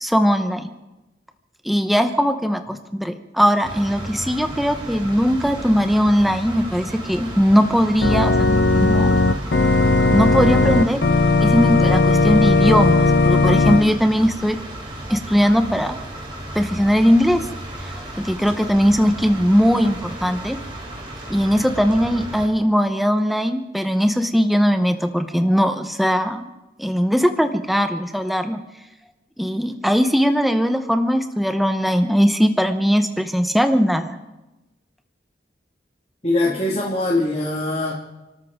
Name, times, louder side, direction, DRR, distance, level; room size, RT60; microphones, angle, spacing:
voice 1, 0.0-0.7 1.6-9.1 10.1-11.0 11.4-14.6 15.1-16.0 16.5-17.5 17.8-20.6 21.3-26.4 26.8-28.6 29.4-34.2, equal, ahead, 7 dB, 0.8 m, -19 dB
sound 1, 3.6-22.5, right 1 dB, 25° right, 2.9 m, -34 dB
Organ, 8.0-13.8, left 3 dB, 70° left, 1.0 m, -16 dB
voice 2, 36.2-37.9, left 2 dB, 35° left, -4 dB, 1.9 m, -22 dB
29.5 x 13.0 x 3.6 m, 1.0 s
head